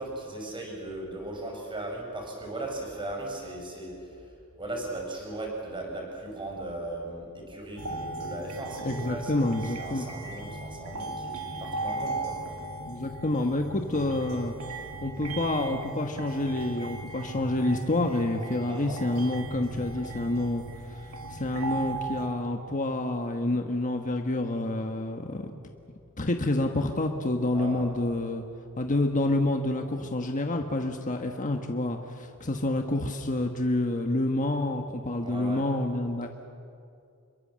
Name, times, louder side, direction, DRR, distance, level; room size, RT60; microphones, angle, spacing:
voice 1, 0.0-4.2 4.6-12.4 18.6-19.0 27.5-27.8 35.2-35.6, right 2 dB, 20° right, 0 dB, 5.8 m, -37 dB
sound 1, 7.8-22.3, right 2 dB, 70° right, 2.5 m, -38 dB
voice 2, 8.8-10.1 12.9-14.6 15.0-21.0 21.3-25.5 26.2-28.4 28.8-36.3, left 2 dB, 35° left, 4 dB, 1.3 m, -28 dB
28.0 x 22.5 x 7.5 m, 2.4 s
head